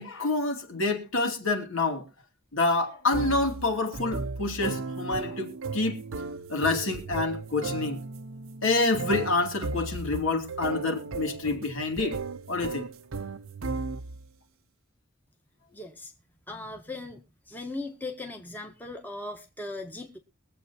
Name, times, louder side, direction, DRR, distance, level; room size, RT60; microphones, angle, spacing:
voice 1, 0.0-2.0 2.5-6.0 6.5-8.0 8.6-12.2 12.5-12.9, left 3 dB, 70° left, 2.7 m, -27 dB
sound 1, 3.1-14.3, right 3 dB, 80° right, 0.8 m, -35 dB
voice 2, 15.7-16.1 16.5-17.2 17.5-20.2, left 2 dB, 10° left, 1.3 m, -38 dB
23.0 x 7.9 x 2.7 m
head